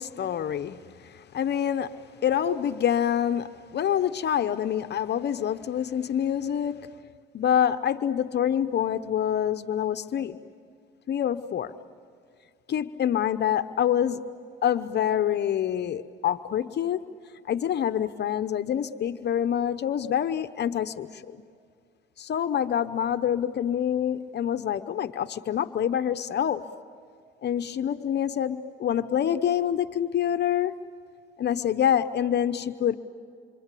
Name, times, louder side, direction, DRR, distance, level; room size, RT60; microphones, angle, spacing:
voice 1, 0.0-2.0 2.2-6.9 7.3-10.4 11.1-11.7 12.7-14.3 14.6-17.0 17.5-21.1 22.2-26.6 27.4-30.8 31.4-32.9, left 9 dB, 60° left, 0.9 m, -26 dB
27.0 x 26.0 x 8.4 m
cardioid pair, 90°, 20 cm